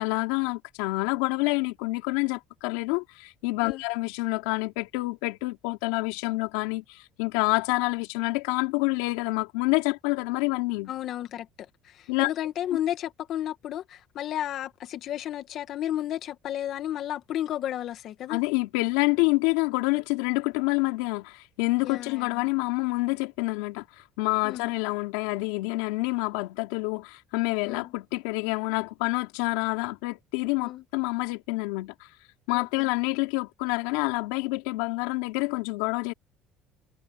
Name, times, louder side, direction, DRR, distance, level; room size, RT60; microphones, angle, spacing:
voice 1, 0.0-10.9 12.1-12.3 18.3-32.1 32.5-36.1, left 23 dB, 90° left, 3.4 m, -27 dB
voice 2, 10.9-18.4 21.8-22.5 24.4-24.7 27.6-27.9 30.6-30.8 32.5-32.9, left 11 dB, 55° left, 2.0 m, -33 dB
supercardioid pair, 105°, 0 cm